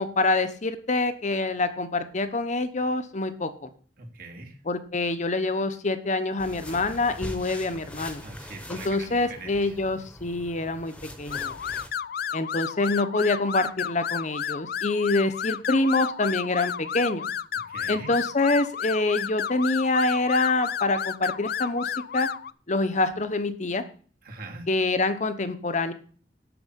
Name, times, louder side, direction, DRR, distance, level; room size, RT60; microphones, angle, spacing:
voice 1, 0.0-3.7 4.7-8.2 8.7-11.6 12.3-17.3 17.9-22.3 22.7-23.8 24.7-25.9, left 2 dB, 45° left, 10 dB, 1.0 m, -26 dB
voice 2, 4.0-4.6 8.2-9.8 17.7-18.1 24.2-24.7, right 3 dB, 55° right, 1 dB, 2.6 m, -42 dB
sound 1, 6.4-11.9, equal, 5° left, 1.2 m, -42 dB
sound 2, 11.3-22.5, left 8 dB, 60° left, 0.4 m, -32 dB
12.0 x 4.8 x 8.2 m, 0.42 s
head